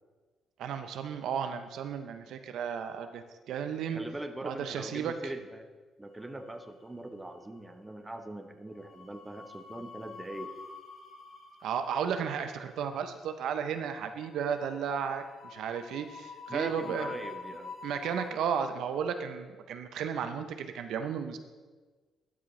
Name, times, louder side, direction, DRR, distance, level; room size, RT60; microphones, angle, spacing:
voice 1, 0.6-4.0 4.4-5.1 11.6-17.1 17.8-21.4, right 7 dB, 80° right, 8 dB, 0.6 m, -34 dB
voice 2, 3.9-5.7 6.0-10.5 16.5-17.7, right 1 dB, 15° right, 6 dB, 0.8 m, -41 dB
sound 1, 6.2-7.0 7.3-7.5 8.7-18.3, left 5 dB, 70° left, 1.9 m, -47 dB
12.5 x 6.1 x 3.1 m, 1.4 s
cardioid pair, 90°, 0 cm